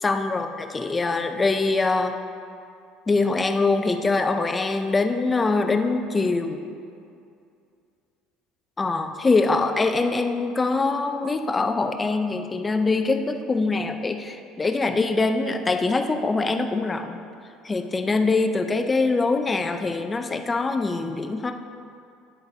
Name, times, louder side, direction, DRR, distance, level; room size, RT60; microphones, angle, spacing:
voice 1, 0.0-2.2 3.1-6.6 8.8-17.2 17.6-21.5, left 3 dB, 15° left, 6 dB, 0.4 m, -23 dB
10.0 x 7.9 x 2.7 m, 2.5 s
cardioid pair, 160°, 0 cm